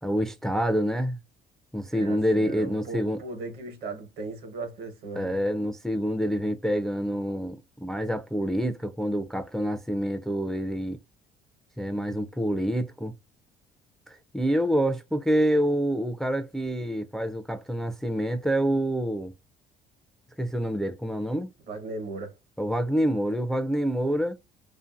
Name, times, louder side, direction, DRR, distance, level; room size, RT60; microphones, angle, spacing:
voice 1, 0.0-1.2 1.7-3.2 5.2-11.0 11.8-13.1 14.1-19.3 20.4-21.5 22.6-24.4, equal, ahead, 0.3 m, -27 dB
voice 2, 1.9-5.4 21.7-22.3, right 3 dB, 70° right, 1.0 m, -37 dB
2.6 x 2.5 x 2.4 m
cardioid pair, 110°, 17 cm